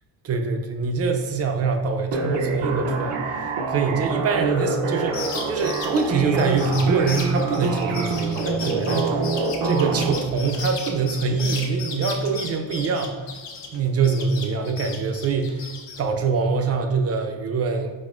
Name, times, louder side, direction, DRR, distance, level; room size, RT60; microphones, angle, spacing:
voice 1, 0.2-9.3 9.6-13.2 13.7-15.7 16.0-17.9, right 4 dB, 40° right, 5 dB, 0.4 m, -24 dB
sound 1, 2.1-10.1, right 4 dB, 85° right, 0.7 m, -26 dB
sound 2, 5.0-13.8 14.0-16.0, left 5 dB, 75° left, 0.8 m, -35 dB
4.9 x 4.1 x 2.4 m, 1.3 s
cardioid pair, 165°, 43 cm